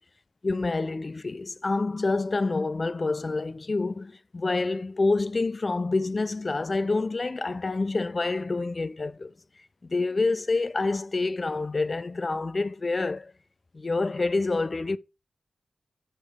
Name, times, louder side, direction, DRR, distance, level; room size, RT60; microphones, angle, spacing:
voice 1, 0.4-9.3 9.8-13.3 13.7-15.0, left 3 dB, 30° left, 0.3 m, -27 dB
6.5 x 5.0 x 3.5 m
wide cardioid pair, 155°, 0 cm